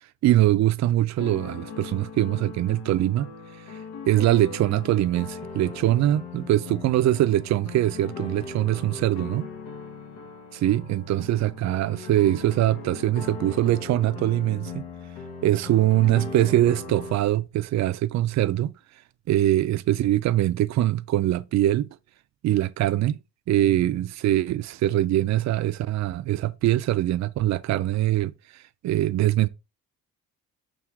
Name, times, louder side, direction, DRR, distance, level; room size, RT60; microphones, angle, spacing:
voice 1, 0.2-3.3 3.7-3.8 4.1-9.5 10.5-14.8 15.4-18.7 19.3-21.9 22.4-23.2 23.5-28.3 28.8-29.5, right 14 dB, 50° right, 0.4 m, -23 dB
sound 1, 1.2-17.2, left 5 dB, 75° left, 1.0 m, -39 dB
5.9 x 2.4 x 3.5 m
cardioid pair, 90°, 36 cm